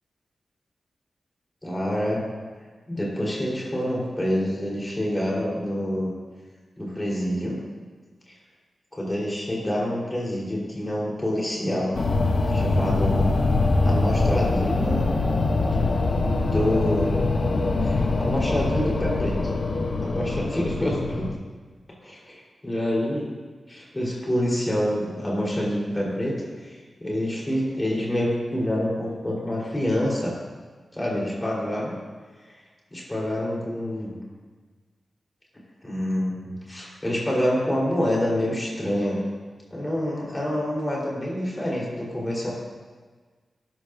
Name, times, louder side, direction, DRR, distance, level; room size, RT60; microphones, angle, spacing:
voice 1, 1.6-2.2 2.9-6.1 6.8-7.6 8.9-12.0 12.5-13.2 13.8-15.1 16.4-17.1 17.8-19.3 20.0-21.2 22.0-23.3 23.7-30.3 30.9-31.9 32.9-34.2 35.8-39.2 39.7-42.5, left 1 dB, 15° left, -5 dB, 3.9 m, -27 dB
sound 1, 11.9-21.3, left 3 dB, 45° left, 0.9 m, -23 dB
21.0 x 11.5 x 2.6 m, 1.4 s
wide cardioid pair, 165°, 0 cm